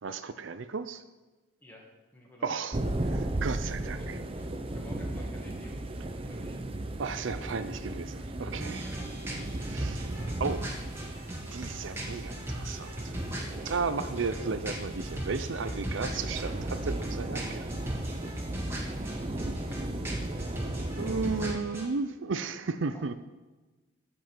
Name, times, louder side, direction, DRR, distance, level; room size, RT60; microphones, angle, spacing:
voice 1, 0.0-1.0 2.4-4.2 7.0-9.0 9.6-10.1 10.4-10.6 11.5-13.1 13.6-17.7 21.0-23.1, right 4 dB, 75° right, 11 dB, 0.5 m, -34 dB
voice 2, 1.6-2.5 2.7-3.1 3.8-6.7 8.8-9.2 9.5-9.8 10.2-10.5 19.0-19.4 22.9-23.1, left 1 dB, 10° left, -2 dB, 2.0 m, -52 dB
sound 1, 2.7-21.5, right 1 dB, 30° right, 0.6 m, -36 dB
sound 2, 8.6-21.9, right 1 dB, 15° right, 1.7 m, -39 dB
14.5 x 5.3 x 6.0 m, 1.2 s
head